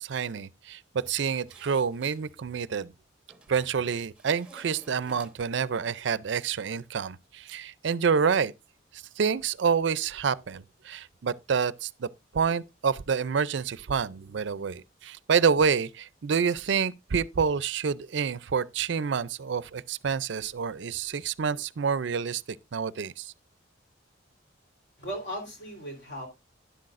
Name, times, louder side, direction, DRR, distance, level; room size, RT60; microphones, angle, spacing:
voice 1, 0.0-2.9 3.5-8.5 8.9-23.3, right 6 dB, 60° right, 0.4 m, -28 dB
sound 1, 1.1-2.3 3.3-3.8 4.2-5.6, right 2 dB, 5° right, 0.9 m, -54 dB
voice 2, 25.0-26.3, equal, 55° left, 3.6 m, -37 dB
11.5 x 10.5 x 2.5 m
head